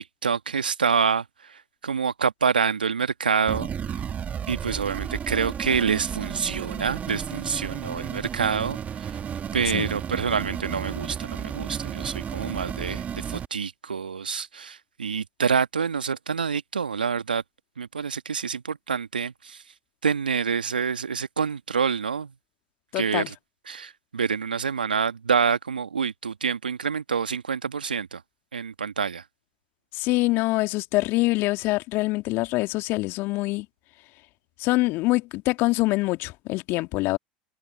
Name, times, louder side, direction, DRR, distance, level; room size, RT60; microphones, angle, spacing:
voice 1, 0.0-4.1 4.5-9.2 9.5-17.4 17.8-19.6 20.0-22.3 22.9-23.3 23.7-28.2 28.5-29.2, right 6 dB, 85° right, 1.5 m, -27 dB
sound 1, 3.5-13.5, right 8 dB, 30° right, 2.2 m, -33 dB
voice 2, 22.9-23.3 29.9-33.7 34.6-37.2, left 21 dB, 50° left, 2.1 m, -24 dB
figure-of-eight pair, 75°, 5 cm